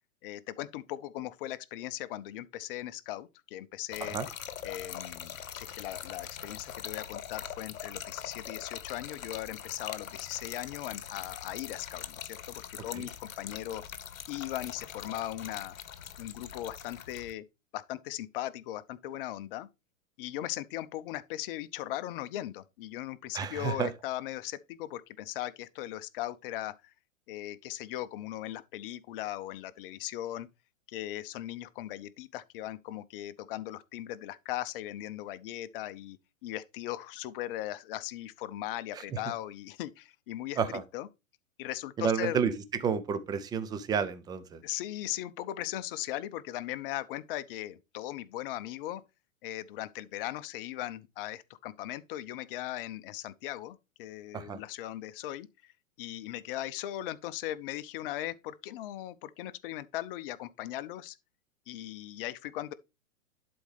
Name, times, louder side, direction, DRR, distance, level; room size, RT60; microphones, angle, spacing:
voice 1, 0.2-4.2 4.6-13.8 14.3-15.7 16.2-17.4 17.7-19.7 20.2-26.9 27.3-30.5 30.9-40.6 40.9-41.1 41.6-42.4 44.6-49.0 49.4-55.7 56.0-61.2 61.7-62.7, left 14 dB, 40° left, 0.7 m, -38 dB
Trickle dribble / Fill (with liquid), 3.9-17.3, left 9 dB, 75° left, 1.0 m, -43 dB
voice 2, 23.3-23.9 38.9-39.2 40.6-40.8 42.0-42.5 42.8-44.6 54.3-54.6, right 6 dB, 10° right, 0.5 m, -31 dB
11.0 x 4.3 x 3.3 m
hypercardioid pair, 115°, 41 cm